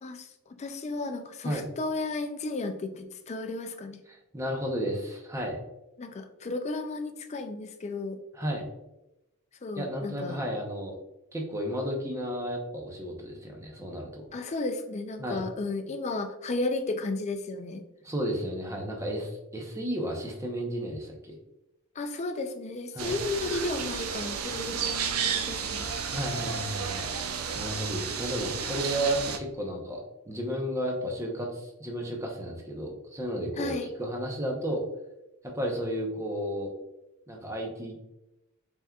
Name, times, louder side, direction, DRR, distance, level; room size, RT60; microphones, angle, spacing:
voice 1, 0.0-4.0 6.0-8.2 9.6-10.4 14.3-17.8 22.0-26.1 27.3-27.4 33.6-33.9, left 2 dB, 30° left, 7 dB, 0.4 m, -34 dB
voice 2, 4.1-5.6 8.3-8.6 9.8-11.0 11.3-14.3 15.2-15.4 18.0-21.4 22.9-23.1 26.1-30.0 30.3-34.8 35.4-36.7 37.3-38.0, equal, 15° right, 0 dB, 0.7 m, -33 dB
sound 1, 23.0-29.4, right 6 dB, 85° right, 0.5 m, -32 dB
4.2 x 3.5 x 2.3 m, 0.90 s
head